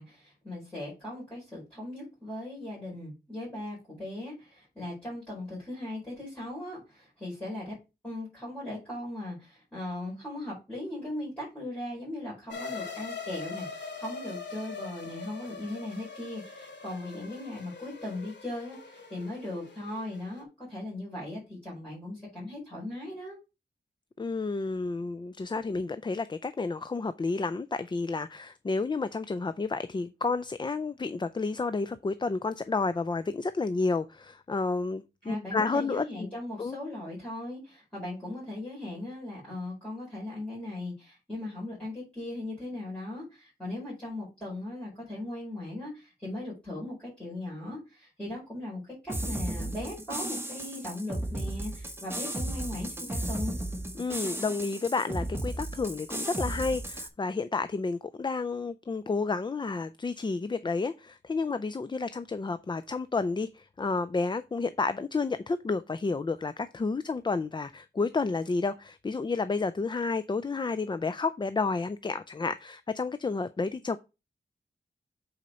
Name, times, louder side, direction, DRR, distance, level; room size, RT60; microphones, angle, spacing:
voice 1, 0.0-7.7 8.0-23.4 35.2-53.6, left 1 dB, 5° left, 5.0 m, -38 dB
sound 1, 12.5-20.4, left 4 dB, 85° left, 2.4 m, -42 dB
voice 2, 24.2-36.0 36.6-36.8 54.0-74.0, left 4 dB, 25° left, 0.4 m, -31 dB
sound 2, 49.1-57.1, right 1 dB, 15° right, 1.1 m, -34 dB
8.4 x 4.3 x 5.2 m
wide cardioid pair, 130°, 18 cm